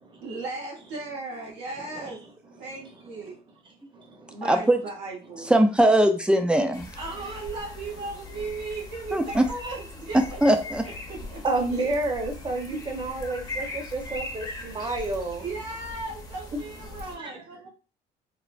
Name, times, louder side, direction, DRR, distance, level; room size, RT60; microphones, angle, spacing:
voice 1, 0.2-2.2 2.6-3.3 4.3-5.5 7.0-10.4 10.8-11.4 11.7-11.9 12.7-12.8 15.4-17.7, right 3 dB, 90° right, 1.1 m, -36 dB
voice 2, 3.9-4.4 11.4-15.4 16.9-17.4, right 2 dB, 30° right, 0.8 m, -30 dB
voice 3, 4.4-4.8 5.4-6.8 9.1-9.5 10.4-10.8, right 1 dB, 5° right, 0.4 m, -20 dB
sound 1, 6.7-17.2, left 2 dB, 20° left, 0.7 m, -40 dB
3.2 x 2.0 x 2.4 m
cardioid pair, 110°, 17 cm